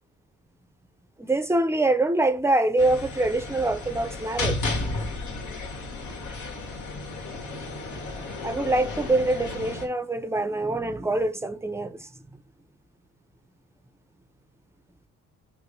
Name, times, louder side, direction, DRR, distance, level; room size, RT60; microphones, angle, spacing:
voice 1, 1.2-4.8 8.4-12.1, right 2 dB, 10° right, 0.7 m, -25 dB
sound 1, 2.8-9.9, left 2 dB, 75° left, 2.5 m, -33 dB
6.8 x 2.7 x 5.3 m
cardioid pair, 90°, 30 cm